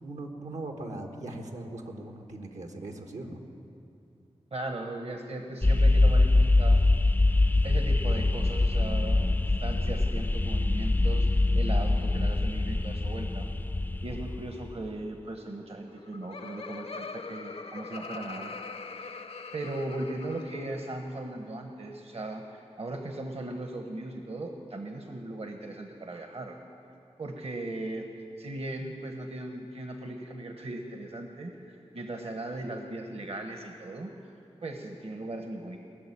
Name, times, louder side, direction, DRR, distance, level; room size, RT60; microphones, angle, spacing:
voice 1, 0.0-3.4, right 2 dB, 85° right, 2 dB, 1.6 m, -39 dB
voice 2, 4.5-6.8 7.6-11.3 11.5-13.5 14.0-18.5 19.0-19.2 19.5-26.6 27.2-28.1 28.4-34.1 34.6-35.8, right 2 dB, 60° right, 4 dB, 1.1 m, -38 dB
sound 1, 5.6-14.9, left 2 dB, 15° left, 0.4 m, -24 dB
Laughter, 15.8-21.1, left 4 dB, 60° left, 0.7 m, -42 dB
20.0 x 6.9 x 9.9 m, 2.7 s
wide cardioid pair, 75°, 12 cm